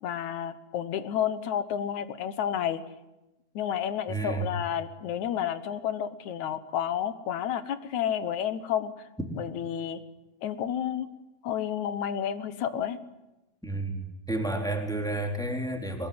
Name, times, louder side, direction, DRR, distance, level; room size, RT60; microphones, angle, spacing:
voice 1, 0.0-2.8 3.6-8.9 9.4-10.0 10.4-11.1 11.4-13.0, left 9 dB, 75° left, 12 dB, 2.5 m, -30 dB
voice 2, 4.1-4.5 13.6-16.1, right 2 dB, ahead, 2 dB, 3.7 m, -31 dB
23.5 x 21.5 x 9.6 m, 0.99 s
omnidirectional pair, 3.5 m